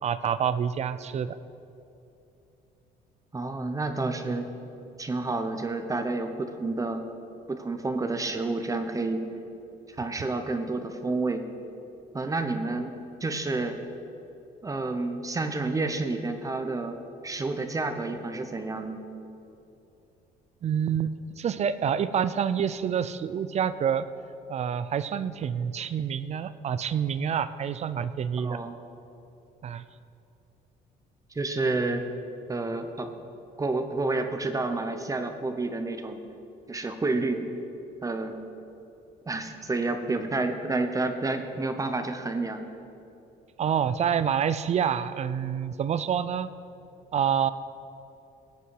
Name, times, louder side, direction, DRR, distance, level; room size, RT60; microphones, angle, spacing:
voice 1, 0.0-1.4 20.6-21.1 21.4-24.1 24.5-28.6 29.6-29.8 43.6-46.5 47.1-47.5, right 8 dB, 40° right, 14 dB, 0.5 m, -27 dB
voice 2, 3.3-4.5 5.0-7.0 7.5-9.3 9.9-11.4 12.1-13.8 14.6-17.0 17.2-19.0 28.4-28.8 31.3-32.0 32.5-33.1 33.6-36.2 36.7-37.4 38.0-38.4 39.2-42.7, right 3 dB, 20° right, 7 dB, 0.9 m, -29 dB
18.0 x 8.3 x 4.8 m, 2.8 s
cardioid pair, 110°, 17 cm